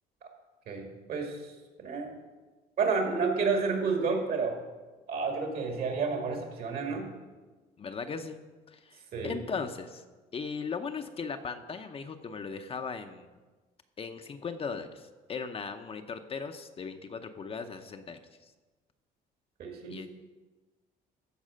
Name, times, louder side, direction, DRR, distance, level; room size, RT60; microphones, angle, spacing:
voice 1, 0.7-1.4 1.8-2.2 2.8-4.6 5.1-7.1 9.1-9.4 19.6-20.0, right 4 dB, 65° right, 2 dB, 2.3 m, -30 dB
voice 2, 7.8-10.0 10.3-13.4 14.0-18.2 19.9-20.1, left 5 dB, 35° left, 7 dB, 0.7 m, -38 dB
14.0 x 4.8 x 6.4 m, 1.3 s
cardioid pair, 110°, 17 cm